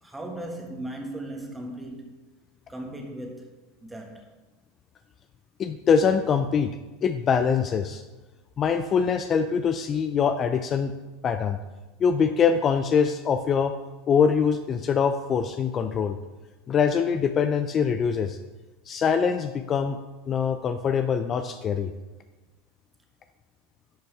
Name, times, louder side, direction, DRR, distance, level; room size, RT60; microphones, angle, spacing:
voice 1, 0.0-2.1 2.7-4.3, right 1 dB, 10° right, 1.6 m, -37 dB
voice 2, 5.6-6.7 7.0-8.0 8.6-10.9 11.2-11.6 12.0-13.7 14.1-16.2 16.7-18.4 18.9-20.0 20.3-21.9, left 6 dB, 35° left, 0.4 m, -23 dB
11.5 x 5.4 x 3.4 m
hypercardioid pair, 95°, 0 cm